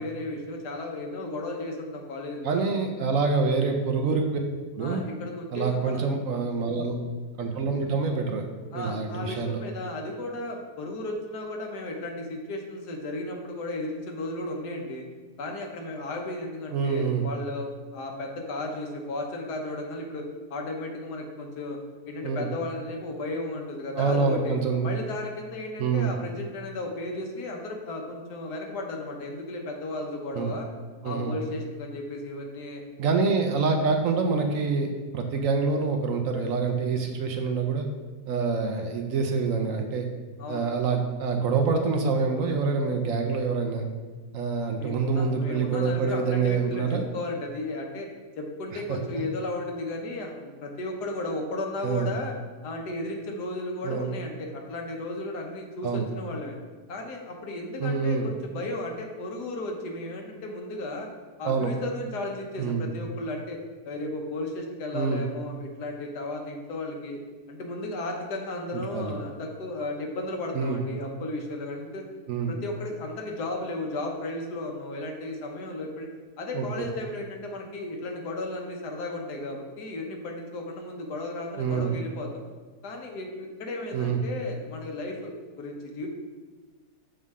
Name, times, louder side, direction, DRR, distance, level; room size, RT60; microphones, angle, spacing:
voice 1, 0.0-2.7 4.8-6.1 8.7-15.0 15.4-20.2 20.5-21.8 22.1-24.5 24.8-30.7 31.0-32.8 40.4-40.7 44.6-48.1 48.4-52.3 52.6-56.6 56.9-61.1 61.4-63.6 63.8-67.2 67.5-72.1 72.5-76.1 76.4-82.4 82.8-86.1, left 2 dB, 85° left, 2 dB, 1.5 m, -34 dB
voice 2, 2.4-4.4 4.8-5.0 5.5-6.9 7.4-8.4 8.7-9.6 16.7-17.3 22.2-22.5 24.0-24.9 25.8-26.1 30.3-30.5 31.0-31.3 33.0-37.8 38.3-40.1 40.5-43.9 44.3-47.0 48.7-49.3 51.8-52.1 53.8-54.1 55.8-56.1 57.8-58.3 61.4-61.7 62.6-62.9 64.9-65.2 68.9-69.1 70.5-70.8 72.3-72.5 76.5-76.7 81.6-81.9 83.9-84.2, right 4 dB, 65° right, 4 dB, 1.0 m, -26 dB
6.5 x 5.5 x 3.6 m, 1.3 s
omnidirectional pair, 1.7 m